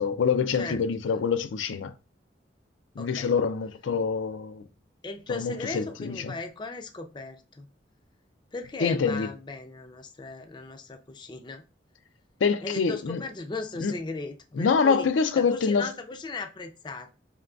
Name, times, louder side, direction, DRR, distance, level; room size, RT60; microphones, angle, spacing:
voice 1, 0.0-1.9 3.0-4.7 5.3-6.3 8.8-9.3 12.4-13.2 13.8-13.9 14.6-15.9, left 5 dB, 90° left, 0.4 m, -25 dB
voice 2, 3.0-3.3 5.0-7.7 8.5-11.6 12.6-15.1 15.3-17.1, left 3 dB, 25° left, 0.4 m, -37 dB
4.6 x 3.6 x 2.3 m
head